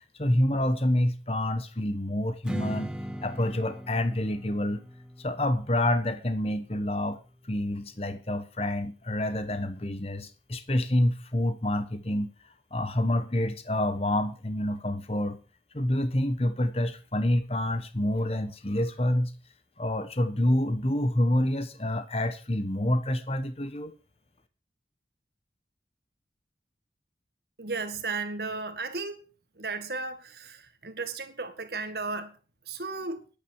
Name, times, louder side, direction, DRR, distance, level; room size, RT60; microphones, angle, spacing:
voice 1, 0.2-2.9 3.2-4.8 5.2-7.2 7.4-12.3 12.7-15.4 15.7-19.3 19.8-23.9, left 1 dB, 35° left, 1.2 m, -27 dB
Strum, 2.4-7.7, equal, 5° right, 1.1 m, -40 dB
voice 2, 27.6-29.2 29.6-32.3 32.7-33.2, right 3 dB, 60° right, 1.8 m, -34 dB
10.5 x 8.8 x 7.2 m
head